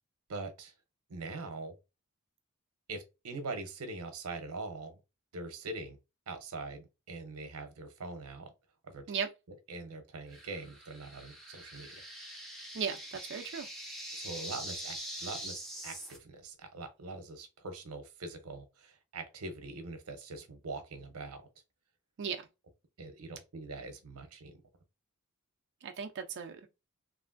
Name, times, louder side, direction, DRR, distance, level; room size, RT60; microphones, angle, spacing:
voice 1, 0.3-0.7 1.1-1.7 2.9-5.0 5.3-6.0 6.3-8.5 8.8-9.0 9.7-11.9 14.1-21.4 23.0-24.6, right 3 dB, 85° right, 0.7 m, -43 dB
sound 1, 10.3-16.2, equal, ahead, 0.7 m, -44 dB
voice 2, 13.3-13.7 22.2-22.4 25.8-26.7, right 6 dB, 55° right, 0.4 m, -36 dB
3.0 x 2.4 x 2.4 m
head